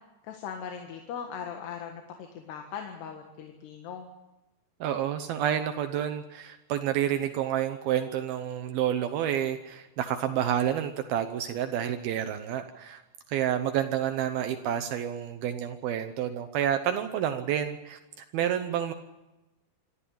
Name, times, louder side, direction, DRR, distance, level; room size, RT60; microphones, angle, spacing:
voice 1, 0.2-4.1, left 7 dB, 85° left, 4 dB, 3.8 m, -39 dB
voice 2, 4.8-13.0 13.3-18.0 18.3-18.9, right 10 dB, 75° right, 8 dB, 2.7 m, -29 dB
26.5 x 13.5 x 8.8 m, 1.0 s
omnidirectional pair, 4.6 m